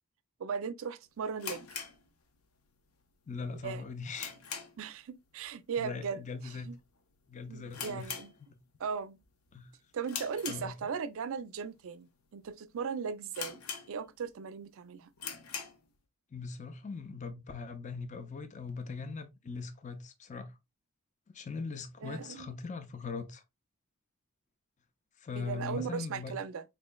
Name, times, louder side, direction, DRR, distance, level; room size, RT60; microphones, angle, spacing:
voice 1, 0.4-1.7 3.6-3.9 4.8-6.8 7.5-8.3 8.8-9.2 9.9-13.6 13.9-15.1 22.0-22.5 25.4-26.6, right 6 dB, 65° right, 0.4 m, -38 dB
sound 1, 1.4-2.7 3.0-3.1 3.6-5.0 5.3-5.6 5.8-5.9 6.6-6.9 7.2-7.3 7.7-8.9 9.2-9.5 10.0-11.2 11.7-11.8 12.4-12.5 12.8-12.9 13.3-14.3 14.7-14.8 15.1-15.9, left 6 dB, 70° left, 0.7 m, -42 dB
voice 2, 3.3-4.3 5.8-6.7 7.3-8.1 8.5-8.6 9.5-9.7 10.5-10.8 16.3-20.6 21.3-23.4 25.2-26.3, left 4 dB, 35° left, 0.5 m, -40 dB
4.4 x 3.1 x 2.2 m
head